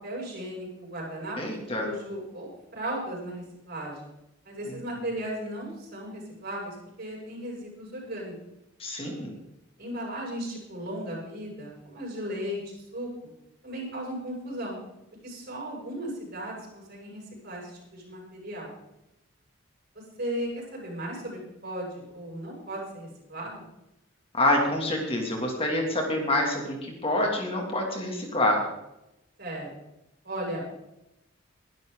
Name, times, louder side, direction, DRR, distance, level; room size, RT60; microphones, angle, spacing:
voice 1, 0.0-1.4 1.7-4.1 4.4-8.3 9.8-13.1 13.6-14.8 15.2-18.7 19.9-23.6 29.4-29.7 30.2-30.7, right 1 dB, 50° right, -3 dB, 7.2 m, -36 dB
voice 2, 1.4-1.9 4.7-4.8 8.8-9.4 24.3-28.6, left 1 dB, 30° left, 1 dB, 2.7 m, -27 dB
21.5 x 12.0 x 4.0 m, 0.90 s
head